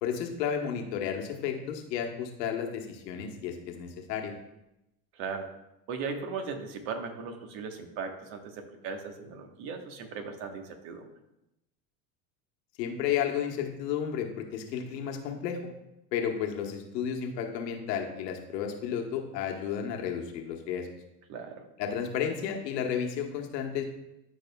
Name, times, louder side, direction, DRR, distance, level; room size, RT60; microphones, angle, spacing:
voice 1, 0.0-4.3 12.8-15.6 16.1-20.9 21.8-23.8, left 8 dB, 85° left, 3 dB, 1.2 m, -32 dB
voice 2, 5.1-5.5 5.9-11.1 21.3-21.7, right 5 dB, 65° right, 5 dB, 1.3 m, -38 dB
14.0 x 4.7 x 2.3 m, 0.89 s
hypercardioid pair, 85°, 48 cm